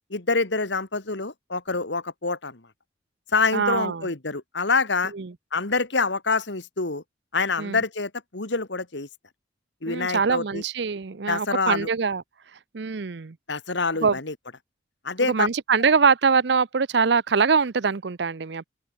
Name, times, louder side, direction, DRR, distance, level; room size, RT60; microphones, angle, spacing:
voice 1, 0.1-2.6 3.3-5.1 5.5-7.0 7.3-9.1 9.8-10.6 11.3-11.9 13.5-14.3 15.0-15.5, left 4 dB, 70° left, 2.0 m, -26 dB
voice 2, 3.5-4.1 5.1-5.3 7.6-7.8 9.9-12.2 12.7-13.4 14.0-14.2 15.3-18.7, right 5 dB, 65° right, 0.6 m, -23 dB
open air
head